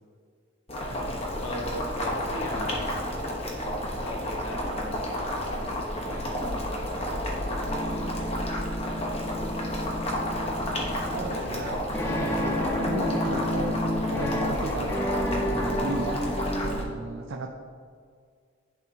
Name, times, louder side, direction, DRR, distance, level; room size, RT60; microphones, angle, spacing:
Boiling, 0.7-16.8, equal, 30° left, 1.0 m, -31 dB
voice 1, 0.9-2.9 3.9-5.7 6.1-6.8 7.7-8.5 8.9-9.9 11.1-12.5, left 1 dB, 70° left, -1 dB, 1.3 m, -41 dB
sound 1, 6.1-16.8, left 1 dB, 10° left, 0.6 m, -32 dB
voice 2, 11.1-11.8 12.1-17.5, right 2 dB, 70° right, 2 dB, 0.5 m, -36 dB
10.5 x 4.4 x 2.7 m, 2.1 s
head